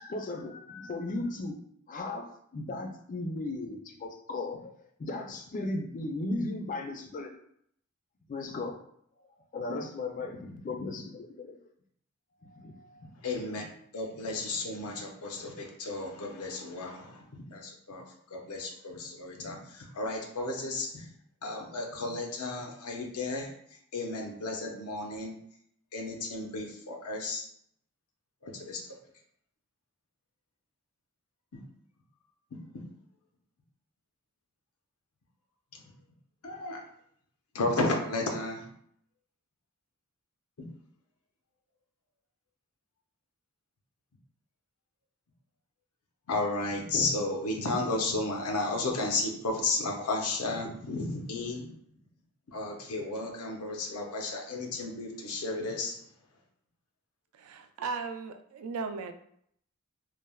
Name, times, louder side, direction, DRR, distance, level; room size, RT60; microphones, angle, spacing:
voice 1, 0.0-1.6 1.9-7.3 8.3-8.7 9.5-11.6 12.4-13.1, left 2 dB, 35° left, 3 dB, 0.3 m, -36 dB
voice 2, 13.2-13.6 13.9-18.0 18.3-21.1 21.4-23.5 23.9-25.3 25.9-27.4 28.4-28.8 31.5-31.6 36.4-36.8 37.5-38.6 46.3-51.7 52.5-55.9, left 2 dB, 90° left, 1 dB, 0.6 m, -33 dB
voice 3, 57.3-59.1, right 4 dB, 80° right, 12 dB, 0.3 m, -36 dB
3.2 x 2.0 x 2.3 m, 0.68 s
head